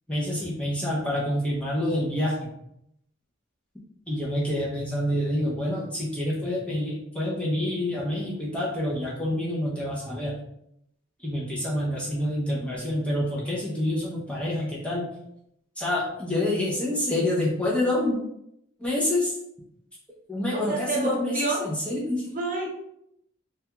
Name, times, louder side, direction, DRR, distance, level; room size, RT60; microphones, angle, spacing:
voice 1, 0.1-2.5 4.1-10.4 11.2-15.1 15.8-18.2 18.8-19.4 20.3-22.3, left 1 dB, 5° left, -5 dB, 0.5 m, -27 dB
voice 2, 20.5-21.6 22.3-22.7, right 2 dB, 40° right, -1 dB, 0.6 m, -28 dB
2.3 x 2.3 x 2.8 m, 0.77 s
head